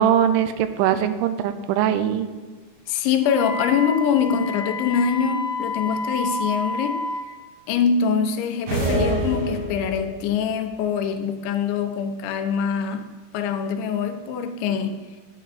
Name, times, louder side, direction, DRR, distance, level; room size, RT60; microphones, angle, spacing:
voice 1, 0.0-2.3, right 9 dB, 90° right, 10 dB, 3.1 m, -21 dB
voice 2, 2.9-7.0 7.7-13.0 13.3-15.0, left 6 dB, 85° left, 7 dB, 3.1 m, -24 dB
Wind instrument woodwind instrument, 3.2-7.3, left 2 dB, 15° left, 3.2 m, -29 dB
sound 1, 8.7-10.2, right 1 dB, 65° right, 5.4 m, -25 dB
11.0 x 8.7 x 4.1 m, 1.4 s
omnidirectional pair, 5.3 m